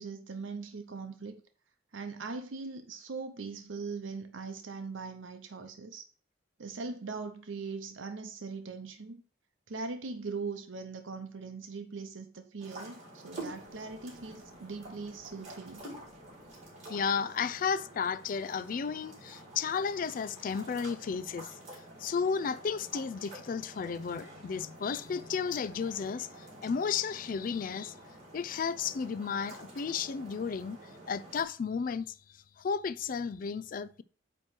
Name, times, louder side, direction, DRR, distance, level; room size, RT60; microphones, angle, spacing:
voice 1, 0.0-1.4 1.9-6.1 6.6-9.2 9.7-15.9, right 4 dB, 90° right, 0.7 m, -40 dB
sound 1, 12.6-31.4, right 1 dB, 35° right, 2.9 m, -49 dB
voice 2, 16.9-27.9 28.3-30.8 31.1-34.0, left 6 dB, 45° left, 0.3 m, -33 dB
8.8 x 3.1 x 5.9 m
head